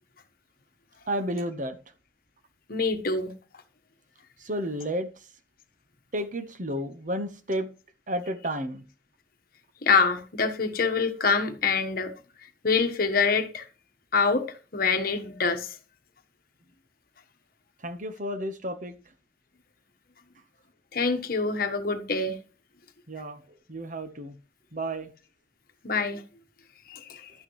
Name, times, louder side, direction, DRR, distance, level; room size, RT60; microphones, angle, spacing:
voice 1, 1.1-1.8 4.4-5.1 6.1-7.7 8.1-8.9 17.8-19.0 23.1-23.4 23.7-24.4 24.7-25.1, equal, 45° right, 1.1 m, -31 dB
voice 2, 2.7-3.3 9.8-12.1 12.6-13.6 14.1-14.5 14.7-15.7 20.9-22.4 25.8-26.2 26.9-27.3, left 4 dB, 50° left, 1.3 m, -25 dB
12.0 x 8.8 x 3.1 m
head